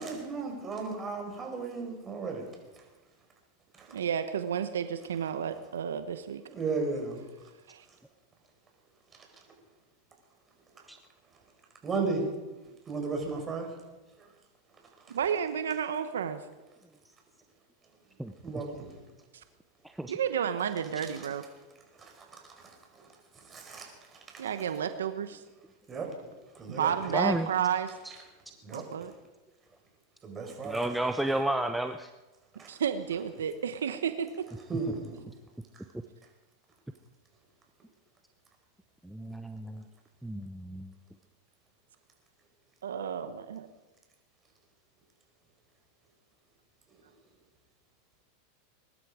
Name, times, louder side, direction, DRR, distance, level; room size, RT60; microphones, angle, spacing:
voice 1, 0.0-2.5 3.8-4.0 6.5-7.2 11.8-12.2 12.9-13.7 14.2-14.3 18.4-18.9 21.2-21.3 21.9-23.1 23.3-24.5 25.9-26.1 26.5-26.9 28.6-28.8 30.2-30.9 32.6-32.7 34.7-35.2, right 4 dB, 25° right, 2 dB, 4.9 m, -35 dB
voice 2, 3.9-6.4 7.7-7.8 15.1-16.4 20.1-21.4 24.4-25.4 26.7-27.9 28.7-29.1 32.7-34.5 42.8-43.7, right 8 dB, 90° right, 10 dB, 1.0 m, -31 dB
voice 3, 27.1-27.5 30.6-32.1 39.0-39.8 40.2-40.9, right 1 dB, 5° right, 6 dB, 0.8 m, -31 dB
21.5 x 12.0 x 4.9 m, 1.1 s
hypercardioid pair, 110°, 0 cm